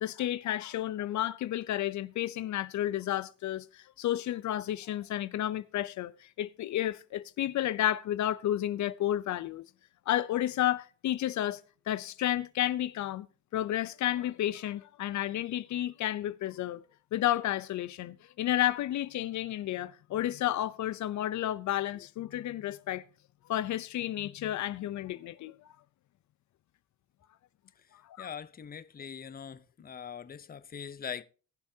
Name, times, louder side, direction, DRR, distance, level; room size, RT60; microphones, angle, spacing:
voice 1, 0.0-9.6 10.1-11.6 11.9-13.3 13.5-16.8 17.1-23.0 23.5-25.6 28.2-28.3, left 13 dB, 70° left, 0.6 m, -31 dB
voice 2, 28.2-31.2, left 7 dB, 30° left, 0.7 m, -42 dB
20.5 x 7.0 x 2.8 m
cardioid pair, 90°, 30 cm